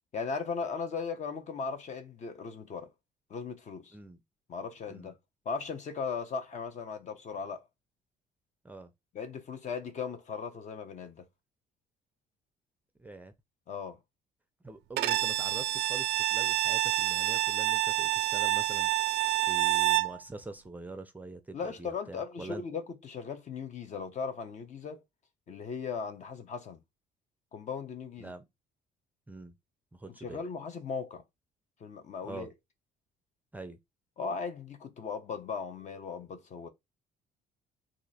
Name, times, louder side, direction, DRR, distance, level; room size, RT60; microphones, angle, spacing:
voice 1, 0.1-2.9 3.3-4.0 4.5-5.2 5.4-7.6 9.1-11.3 13.7-14.0 21.5-25.0 25.5-26.8 27.5-28.3 30.1-31.2 31.8-32.5 34.2-36.7, left 5 dB, 45° left, 0.8 m, -37 dB
voice 2, 13.0-13.3 14.6-18.9 19.5-22.6 28.2-28.4 29.3-29.5 29.9-30.4 32.2-32.5 33.5-33.8, right 2 dB, 10° right, 0.5 m, -44 dB
Bowed string instrument, 15.0-20.2, right 16 dB, 85° right, 0.4 m, -28 dB
2.9 x 2.5 x 4.0 m
cardioid pair, 110°, 17 cm